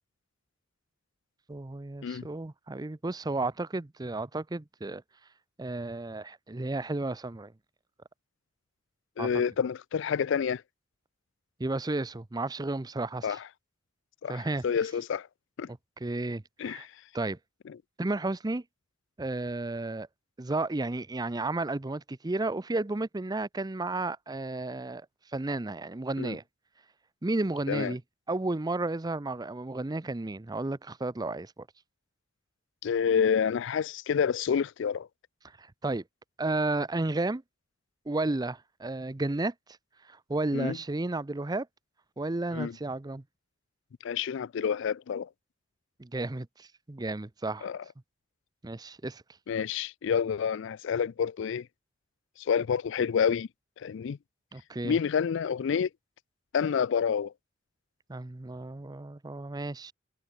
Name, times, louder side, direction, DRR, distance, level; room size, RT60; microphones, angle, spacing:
voice 1, 1.5-5.0 5.6-7.5 9.2-9.3 11.6-13.4 14.3-14.6 15.7-16.8 17.1-17.4 18.0-18.6 19.2-20.1 20.4-25.1 25.3-26.4 27.2-28.0 28.3-31.7 35.6-36.0 36.4-37.4 38.1-39.5 40.1-41.7 42.2-43.2 46.0-47.7 48.6-49.2 54.5-55.0 58.1-59.9, right 2 dB, 20° right, 0.6 m, -32 dB
voice 2, 9.2-10.6 13.2-13.4 14.2-15.3 15.6-15.7 16.6-16.9 26.2-26.4 27.7-27.9 32.8-35.1 40.5-40.8 42.5-42.8 44.0-45.3 47.6-47.8 49.5-51.7 52.4-53.5 53.8-54.2 54.8-55.9 56.5-57.3, left 7 dB, 65° left, 0.4 m, -28 dB
head